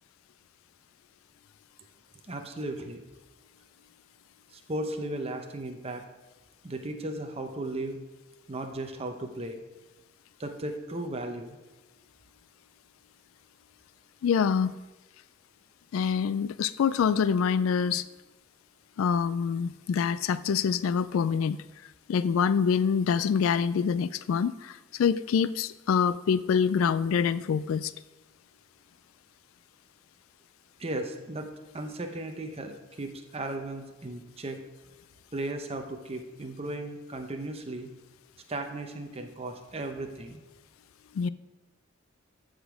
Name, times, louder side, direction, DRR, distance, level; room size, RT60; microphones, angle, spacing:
voice 1, 2.3-3.0 4.5-6.0 6.6-8.0 8.5-9.6 10.4-11.6 30.8-34.6 35.3-37.9 38.5-40.4, right 1 dB, 30° right, 4 dB, 0.8 m, -36 dB
voice 2, 14.2-14.7 15.9-18.0 19.0-21.6 22.1-27.9 41.1-41.3, left 6 dB, 80° left, 16 dB, 0.3 m, -25 dB
14.0 x 5.1 x 5.0 m, 1.1 s
head